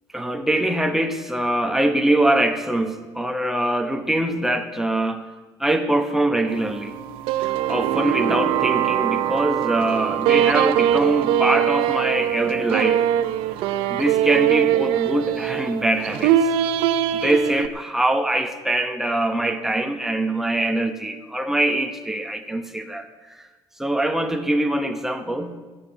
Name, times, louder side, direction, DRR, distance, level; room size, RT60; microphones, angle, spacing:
voice 1, 0.1-5.3 5.6-7.0 7.4-13.1 13.9-16.5 17.1-23.1 23.8-25.6, right 1 dB, 5° right, 6 dB, 1.1 m, -23 dB
sound 1, 6.5-17.7, right 11 dB, 90° right, 0.7 m, -22 dB
15.0 x 7.7 x 8.7 m, 1.3 s
cardioid pair, 130°, 9 cm